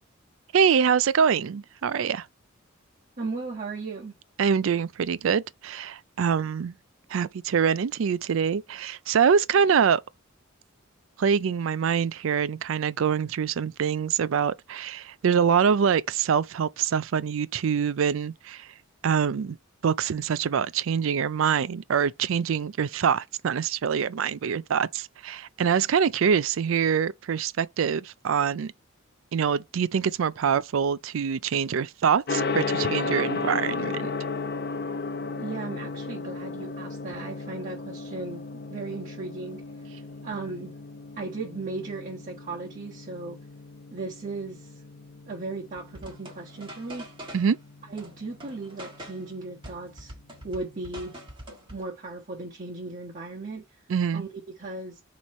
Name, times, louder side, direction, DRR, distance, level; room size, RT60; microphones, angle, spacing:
voice 1, 0.5-2.3 4.4-6.7 7.1-10.0 11.2-18.7 19.0-19.6 19.8-28.7 29.3-34.1 47.3-47.6 53.9-54.3, right 7 dB, 70° right, 0.4 m, -25 dB
voice 2, 3.2-4.1 35.4-39.6 40.2-40.7 41.2-43.4 43.9-44.7 45.3-47.1 47.9-50.1 50.4-51.2 51.7-53.6 54.1-55.0, right 3 dB, 40° right, 1.4 m, -36 dB
Gong, 32.3-51.2, left 4 dB, 55° left, 0.7 m, -35 dB
sound 1, 45.7-47.6 48.0-49.3 49.6-51.8, right 1 dB, 25° right, 1.6 m, -44 dB
8.1 x 3.2 x 4.3 m
head